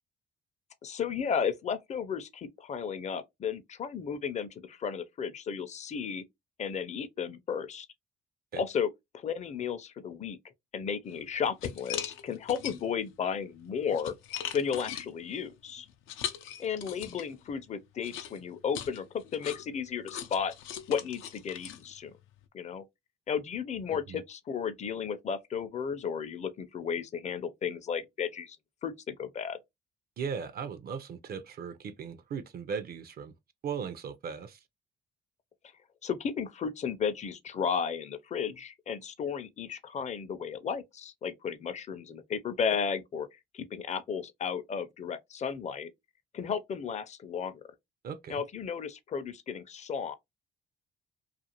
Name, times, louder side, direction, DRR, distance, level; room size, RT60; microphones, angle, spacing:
voice 1, 0.8-6.2 6.6-7.9 8.5-10.4 10.7-14.1 14.5-15.9 16.6-20.5 20.9-22.1 22.5-22.8 23.3-28.6 28.8-29.6 36.0-45.9 46.3-47.6 48.3-50.1, left 7 dB, 35° left, 0.4 m, -34 dB
sound 1, 11.1-11.2 11.6-13.1 13.6-17.4 18.0-22.4, left 10 dB, 90° left, 0.4 m, -40 dB
voice 2, 23.9-24.2 30.2-33.3 33.6-34.6 48.0-48.4, right 6 dB, 50° right, 0.4 m, -38 dB
2.4 x 2.4 x 2.8 m
cardioid pair, 90°, 20 cm